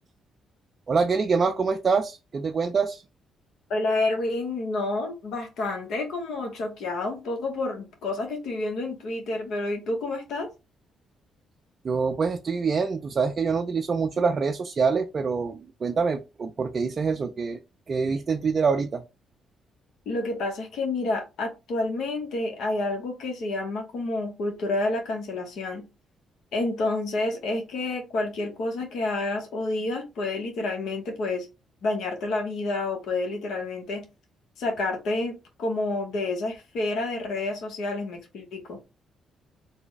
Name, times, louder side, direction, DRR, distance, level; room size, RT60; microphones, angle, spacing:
voice 1, 0.9-3.0 11.8-17.6 17.9-19.0, right 5 dB, 40° right, 0.4 m, -25 dB
voice 2, 3.7-10.5 20.1-25.9 26.5-31.5 31.8-34.0 34.6-38.8, left 2 dB, 75° left, 1.0 m, -29 dB
3.3 x 2.1 x 3.9 m
cardioid pair, 90°, 0 cm